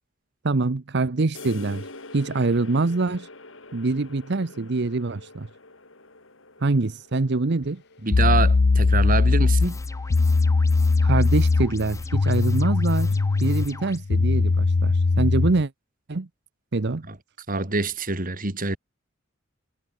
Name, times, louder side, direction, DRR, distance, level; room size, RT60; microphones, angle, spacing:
voice 1, 0.4-1.9 2.1-3.3 3.7-5.5 6.6-7.8 11.0-15.7 16.1-16.3 16.7-17.0, right 3 dB, 60° right, 0.8 m, -25 dB
sound 1, 1.3-8.9, left 2 dB, 75° left, 6.1 m, -45 dB
sound 2, 7.6-7.7 8.1-15.6, left 3 dB, 60° left, 0.6 m, -20 dB
voice 2, 8.0-9.8 17.1-17.2 17.5-18.8, right 3 dB, 45° right, 3.4 m, -26 dB
sound 3, 9.6-14.0, left 3 dB, 15° left, 3.0 m, -43 dB
head